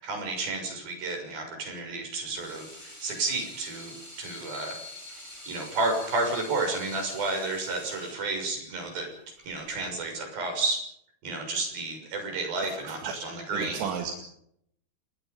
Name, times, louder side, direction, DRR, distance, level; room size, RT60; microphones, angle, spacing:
voice 1, 0.0-4.7 5.5-9.1 9.4-10.8 11.2-13.9, right 3 dB, 50° right, 3 dB, 8.2 m, -31 dB
Water tap faucet / Sink (filling or washing), 2.2-10.2, left 1 dB, 5° left, 7.5 m, -45 dB
voice 2, 12.6-14.1, right 8 dB, 80° right, 3 dB, 4.5 m, -35 dB
29.5 x 20.0 x 5.4 m, 0.72 s
omnidirectional pair, 5.4 m